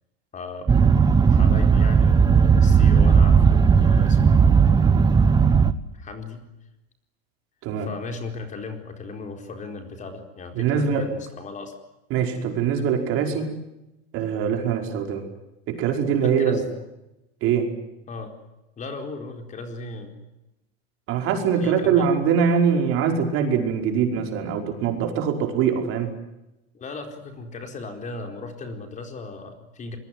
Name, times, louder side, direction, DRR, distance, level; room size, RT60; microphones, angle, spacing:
voice 1, 0.3-1.0 1.3-5.1 5.9-6.5 7.8-11.7 16.2-16.6 18.1-18.3 18.8-20.2 21.6-22.1 26.7-30.0, left 3 dB, 25° left, 5 dB, 4.4 m, -37 dB
sound 1, 0.7-5.7, right 6 dB, 15° right, 1.1 m, -16 dB
voice 2, 10.6-11.0 12.1-13.5 14.1-15.2 15.7-16.6 17.4-17.7 21.1-26.1, right 7 dB, 45° right, 4 dB, 5.4 m, -23 dB
25.5 x 22.0 x 9.5 m, 0.94 s
supercardioid pair, 140°, 31 cm